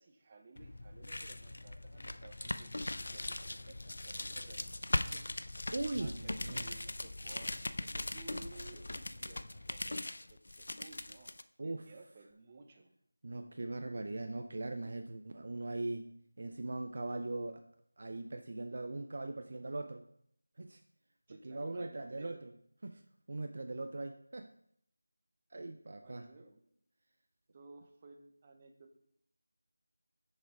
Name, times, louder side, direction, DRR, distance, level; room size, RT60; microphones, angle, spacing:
voice 1, 0.0-5.5 6.0-11.3 11.6-12.9 21.3-22.4 26.0-26.6 27.5-29.0, right 3 dB, 25° right, 4 dB, 0.9 m, -57 dB
sound 1, 0.6-11.4, left 2 dB, 65° left, 0.5 m, -40 dB
voice 2, 5.7-6.7 11.6-11.9 13.2-17.6 18.0-20.1 20.6-20.8 21.4-22.5 22.8-23.0 23.3-24.5 25.5-26.3, right 2 dB, 50° right, 7 dB, 0.5 m, -40 dB
8.5 x 6.4 x 3.7 m, 0.69 s
figure-of-eight pair, 170°, 0 cm